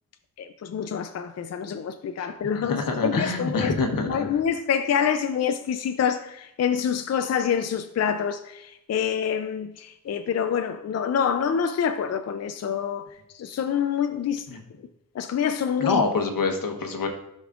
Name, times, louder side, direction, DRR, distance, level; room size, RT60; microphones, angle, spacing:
voice 1, 0.4-3.7 4.1-13.1 13.3-14.5 15.1-16.0, left 7 dB, 50° left, 0.4 m, -26 dB
voice 2, 2.6-4.3 14.5-14.6 15.8-17.1, left 3 dB, 75° left, 1.2 m, -25 dB
12.0 x 5.3 x 2.4 m
wide cardioid pair, 95°, 34 cm